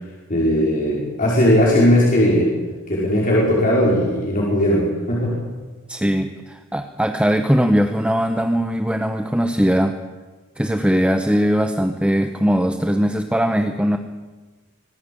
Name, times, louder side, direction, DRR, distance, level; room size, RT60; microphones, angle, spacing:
voice 1, 0.3-2.5 2.9-5.3, equal, 40° left, -5 dB, 5.2 m, -18 dB
voice 2, 5.9-9.9 10.6-14.0, equal, 5° right, 6 dB, 1.0 m, -20 dB
24.5 x 17.0 x 8.7 m, 1.3 s
head